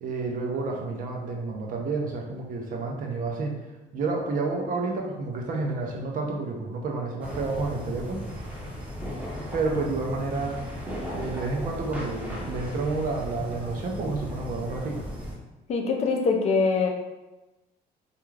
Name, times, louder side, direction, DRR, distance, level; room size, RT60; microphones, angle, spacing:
voice 1, 0.0-3.5 3.9-8.2 9.5-10.6 11.1-15.0, right 3 dB, 55° right, 1 dB, 0.5 m, -30 dB
sound 1, 7.2-15.3, equal, 10° right, 0.7 m, -36 dB
voice 2, 15.7-16.9, left 4 dB, 40° left, 2 dB, 0.5 m, -23 dB
2.4 x 2.2 x 3.1 m, 1.1 s
cardioid pair, 110°, 17 cm